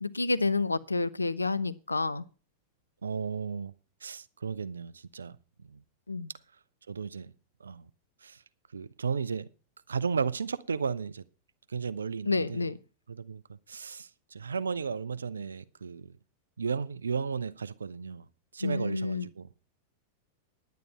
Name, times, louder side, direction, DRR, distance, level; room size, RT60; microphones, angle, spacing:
voice 1, 0.0-2.3 6.1-6.3 12.3-12.8 18.6-19.3, left 3 dB, 90° left, 0.6 m, -29 dB
voice 2, 3.0-3.7 4.0-5.8 6.9-7.3 7.6-7.9 8.2-8.4 8.7-9.5 9.9-11.2 11.7-12.7 13.1-13.4 13.7-16.1 16.6-18.2 18.5-19.5, right 5 dB, 80° right, 0.6 m, -34 dB
10.5 x 9.3 x 5.5 m
figure-of-eight pair, 95°, 0 cm